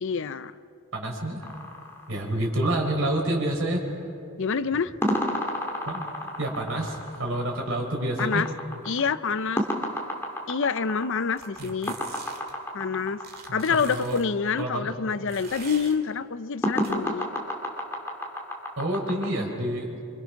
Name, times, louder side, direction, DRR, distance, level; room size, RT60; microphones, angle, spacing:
voice 1, 0.0-0.5 4.4-4.9 8.2-8.5 8.9-9.6 10.5-11.9 12.7-13.2 13.5-17.3, left 5 dB, 60° left, 15 dB, 0.6 m, -27 dB
voice 2, 0.9-1.5 2.1-4.0 5.9-6.0 6.4-8.4 11.6-11.7 13.5-14.2 14.6-14.9 18.8-19.9, right 1 dB, 60° right, 0 dB, 4.2 m, -28 dB
sound 1, 1.4-2.8 5.0-13.6 16.6-19.3, equal, 10° left, 2.2 m, -31 dB
sound 2, 11.4-12.5 13.2-14.2 15.3-16.0 16.8-16.9, right 5 dB, 45° right, 2.2 m, -43 dB
25.5 x 24.5 x 5.9 m, 2.7 s
head